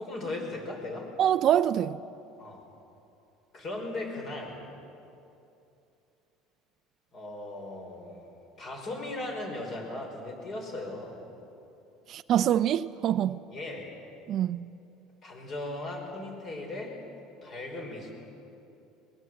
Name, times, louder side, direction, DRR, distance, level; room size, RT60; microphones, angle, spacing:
voice 1, 0.0-1.1 2.4-2.6 3.5-4.6 7.1-11.2 13.5-13.9 15.2-16.9 17.4-18.1, left 2 dB, 40° left, 5.3 m, -37 dB
voice 2, 1.2-2.0 12.1-13.4 14.3-14.7, right 10 dB, 45° right, 0.5 m, -25 dB
22.0 x 20.0 x 8.0 m
cardioid pair, 130°, 0 cm